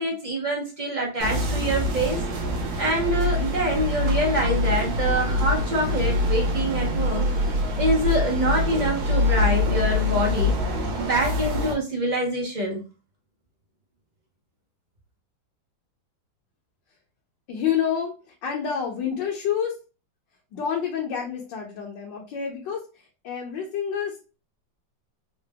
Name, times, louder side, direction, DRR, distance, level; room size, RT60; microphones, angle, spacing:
voice 1, 0.0-2.2 2.8-7.3 7.8-10.5 11.0-12.8, right 1 dB, 75° right, -2 dB, 0.4 m, -25 dB
sound 1, 1.2-11.7, left 2 dB, 60° right, 1.3 m, -24 dB
voice 2, 17.5-19.8 20.5-24.2, left 8 dB, 75° left, -1 dB, 1.4 m, -28 dB
3.8 x 2.1 x 3.2 m, 0.32 s
omnidirectional pair, 2.1 m